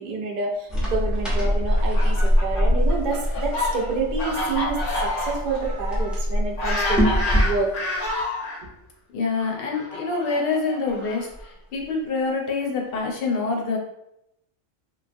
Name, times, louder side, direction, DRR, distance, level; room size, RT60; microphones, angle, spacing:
voice 1, 0.0-7.7, right 3 dB, 60° right, 0 dB, 0.5 m, -28 dB
sound 1, 0.7-7.6, equal, ahead, 0.3 m, -23 dB
Fowl, 1.7-8.6 9.4-11.4, left 2 dB, 90° left, 1.1 m, -29 dB
voice 2, 9.1-13.8, left 4 dB, 60° left, 0 dB, 0.7 m, -26 dB
3.0 x 2.0 x 2.6 m, 0.81 s
omnidirectional pair, 1.2 m